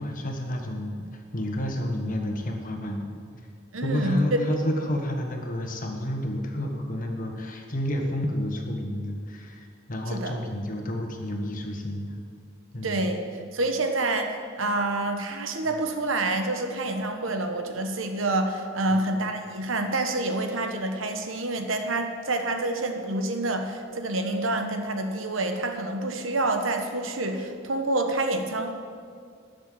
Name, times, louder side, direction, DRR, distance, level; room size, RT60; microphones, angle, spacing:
voice 1, 0.0-3.2 3.8-12.2 12.7-13.1 18.9-19.1, left 1 dB, 45° left, 3 dB, 1.5 m, -30 dB
voice 2, 3.7-4.2 10.1-10.3 12.8-13.2 13.5-28.7, right 2 dB, 75° right, 5 dB, 1.2 m, -27 dB
12.0 x 6.8 x 7.7 m, 2.1 s
head